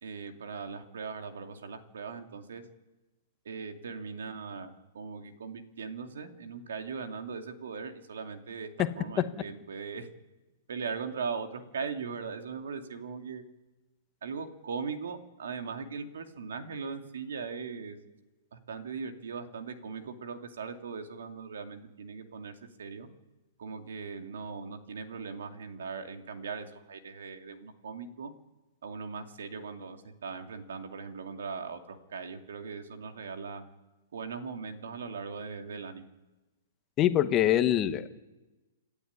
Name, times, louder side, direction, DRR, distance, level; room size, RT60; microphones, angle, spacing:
voice 1, 0.0-2.6 3.4-8.7 9.0-10.1 10.7-13.4 14.2-18.0 18.5-23.1 23.6-28.3 28.8-33.6 34.1-36.1, right 5 dB, 80° right, 6 dB, 2.6 m, -39 dB
voice 2, 37.0-38.1, left 12 dB, 20° left, 10 dB, 1.1 m, -24 dB
27.5 x 12.0 x 9.8 m, 1.1 s
hypercardioid pair, 170°, 0 cm